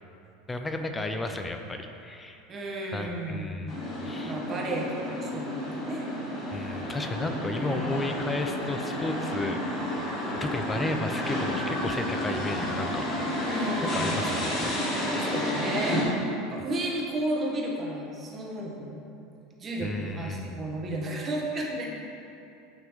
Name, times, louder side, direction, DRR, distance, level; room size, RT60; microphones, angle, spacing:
voice 1, 0.5-2.4 2.9-3.7 4.0-4.4 6.5-9.6 10.3-13.0 13.8-14.8 19.8-20.8 21.6-21.7, left 2 dB, 15° left, 5 dB, 0.4 m, -33 dB
voice 2, 2.5-3.5 4.2-6.1 7.5-8.0 13.5-14.2 15.2-16.1 16.5-19.0 19.6-21.9, right 1 dB, 30° right, -2 dB, 1.1 m, -33 dB
sound 1, 3.7-16.0, left 1 dB, 40° left, 1.3 m, -31 dB
9.0 x 3.0 x 3.5 m, 2.7 s
hypercardioid pair, 85°, 0 cm